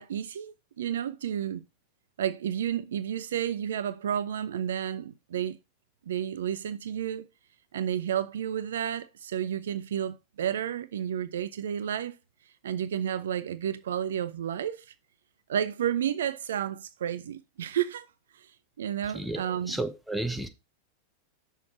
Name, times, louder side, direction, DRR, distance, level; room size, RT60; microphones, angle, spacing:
voice 1, 0.0-1.6 2.2-5.6 6.1-7.3 7.7-12.1 12.6-14.8 15.5-18.1 18.3-18.5 18.8-19.8, right 9 dB, 60° right, 0.5 m, -31 dB
voice 2, 19.1-20.5, right 2 dB, ahead, 0.9 m, -32 dB
6.4 x 4.6 x 5.5 m
figure-of-eight pair, 90°, 0 cm